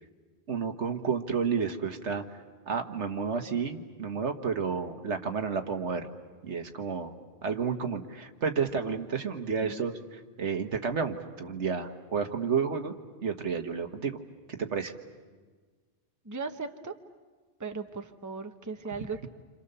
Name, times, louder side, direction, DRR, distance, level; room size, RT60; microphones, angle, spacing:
voice 1, 0.5-2.4 2.7-6.1 6.4-7.1 7.4-12.9 13.2-14.2 14.5-14.9, right 6 dB, 75° right, 6 dB, 1.6 m, -31 dB
voice 2, 16.2-17.0 17.6-19.3, right 4 dB, 15° right, 6 dB, 0.9 m, -37 dB
28.5 x 27.0 x 6.8 m, 1.4 s
omnidirectional pair, 1.2 m